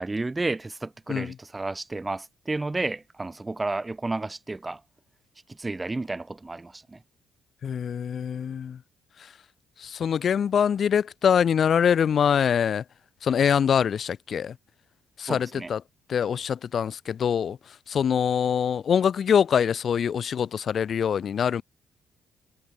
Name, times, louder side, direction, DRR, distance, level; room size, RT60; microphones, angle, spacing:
voice 1, 0.0-4.8 5.6-7.0 15.3-15.7, right 2 dB, 20° right, 3.7 m, -31 dB
voice 2, 7.6-8.8 9.8-12.8 13.2-14.6 15.2-15.8 16.1-17.6 17.9-21.6, left 8 dB, 55° left, 4.1 m, -24 dB
cardioid pair, 90°, 0 cm